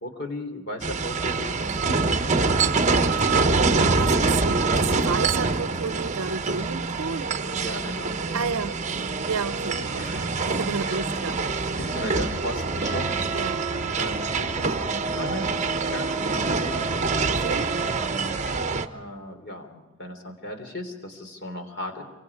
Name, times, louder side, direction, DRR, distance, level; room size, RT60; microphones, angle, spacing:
voice 1, 0.0-2.0 3.0-4.5 7.6-8.6 8.9-9.1 10.0-10.5 10.7-11.1 11.6-13.2 14.0-16.9 18.9-22.0, left 1 dB, 50° left, 3.4 m, -36 dB
sound 1, 0.8-18.9, right 4 dB, 30° right, 1.1 m, -25 dB
voice 2, 4.0-7.3 8.3-8.7 9.3-11.4 13.3-13.6 17.3-17.7, right 5 dB, 70° right, 0.7 m, -31 dB
27.0 x 24.5 x 4.9 m
head